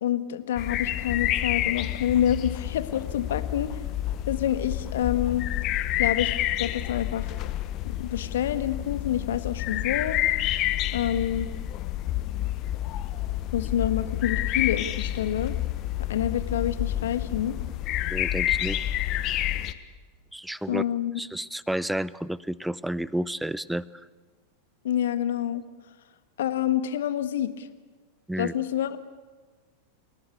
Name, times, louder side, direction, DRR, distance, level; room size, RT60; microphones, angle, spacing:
voice 1, 0.0-3.7 4.3-5.4 6.0-6.3 6.6-7.3 7.8-10.2 10.9-11.5 13.5-15.6 16.1-17.6 20.7-21.2 24.8-25.6 26.4-27.7 28.4-29.0, left 10 dB, 60° left, 12 dB, 1.5 m, -27 dB
sound 1, 0.6-19.7, left 14 dB, 35° left, 1.2 m, -29 dB
voice 2, 18.1-18.9 20.3-20.8 21.2-23.8 28.3-28.5, right 1 dB, 5° right, 20 dB, 0.6 m, -31 dB
29.5 x 17.5 x 8.6 m, 1.4 s
figure-of-eight pair, 90°, 0 cm